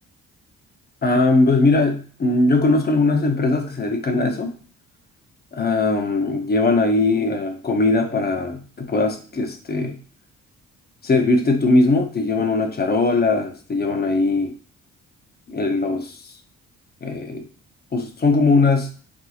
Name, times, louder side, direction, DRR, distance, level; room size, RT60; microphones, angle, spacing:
voice 1, 1.0-4.5 5.5-10.0 11.0-14.5 15.5-16.1 17.0-17.5 17.9-18.9, left 3 dB, 30° left, 4 dB, 0.7 m, -20 dB
3.5 x 2.7 x 2.4 m, 0.40 s
cardioid pair, 90°, 30 cm